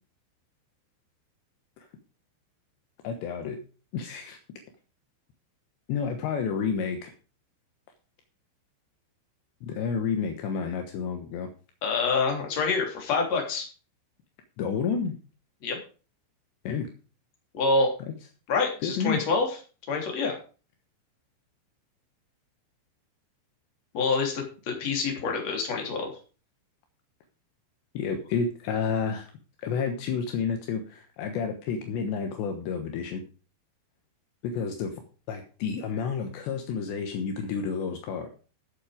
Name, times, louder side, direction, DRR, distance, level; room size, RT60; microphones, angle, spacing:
voice 1, 3.0-3.6 3.9-4.4 5.9-7.1 9.6-11.5 14.6-15.2 16.6-16.9 18.8-19.2 27.9-29.3 29.6-33.2 34.4-34.9 35.3-38.3, left 6 dB, 75° left, 5 dB, 3.3 m, -30 dB
voice 2, 11.8-13.7 15.6-15.8 17.5-17.9 18.5-19.5 19.9-20.4 23.9-26.1, left 4 dB, 40° left, 2 dB, 4.0 m, -26 dB
14.0 x 7.7 x 5.0 m, 0.36 s
omnidirectional pair, 5.4 m